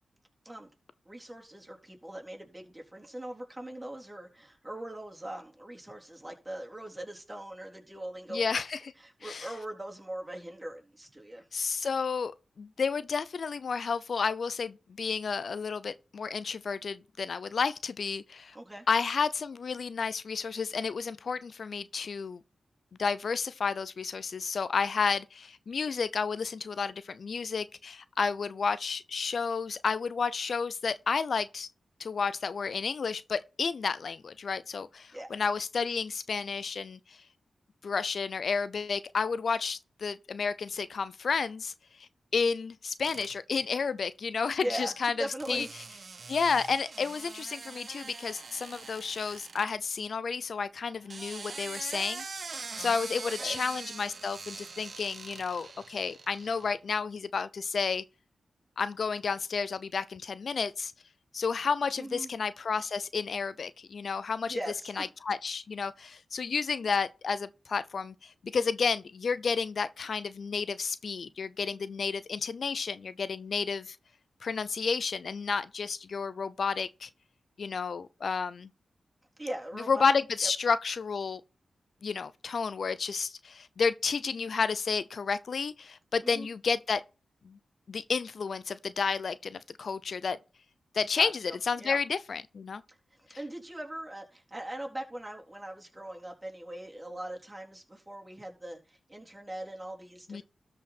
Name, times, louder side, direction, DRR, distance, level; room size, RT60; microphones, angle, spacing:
voice 1, 1.1-8.6 9.0-11.4 18.5-18.9 35.1-35.4 44.6-44.9 45.2-45.7 53.2-53.6 62.0-62.3 64.5-65.1 79.4-80.1 86.2-86.5 91.2-92.0 93.4-100.4, right 1 dB, 20° right, 3.7 m, -40 dB
voice 2, 8.3-8.9 9.2-9.5 11.5-18.6 18.9-22.4 23.0-31.7 32.0-37.2 37.8-45.7 46.3-52.2 52.8-58.0 58.8-60.9 61.3-64.6 64.9-74.0 74.4-77.1 77.6-78.7 79.9-81.4 82.0-87.0 87.4-87.6 87.9-90.4 90.9-92.8 93.3-93.4 100.3-100.4, left 5 dB, 70° left, 0.5 m, -31 dB
sound 1, 43.0-43.6 45.4-49.7 50.9-56.7, right 4 dB, 60° right, 1.2 m, -43 dB
13.0 x 5.0 x 4.2 m
cardioid pair, 45°, 0 cm